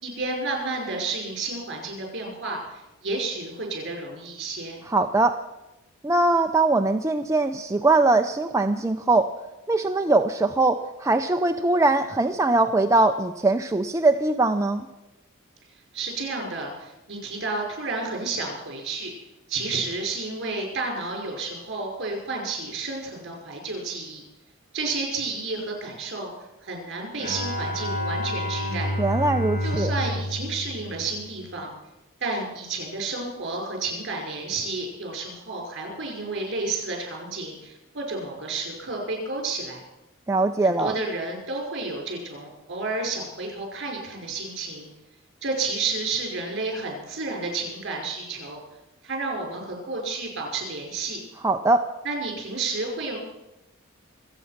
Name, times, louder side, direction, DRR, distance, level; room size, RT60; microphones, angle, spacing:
voice 1, 0.0-4.8 15.9-19.1 19.5-24.2 24.7-26.3 26.6-28.9 29.6-31.7 32.2-39.8 40.6-44.9 45.4-48.6 49.0-51.2 52.0-53.2, right 3 dB, 55° right, 1 dB, 5.5 m, -31 dB
voice 2, 4.9-5.4 6.0-9.3 9.7-14.9 29.0-29.9 40.3-40.9 51.4-51.9, right 2 dB, 15° right, 5 dB, 0.5 m, -21 dB
Bowed string instrument, 27.2-31.6, left 1 dB, 40° left, 2.5 m, -29 dB
25.5 x 8.5 x 5.9 m, 0.95 s
head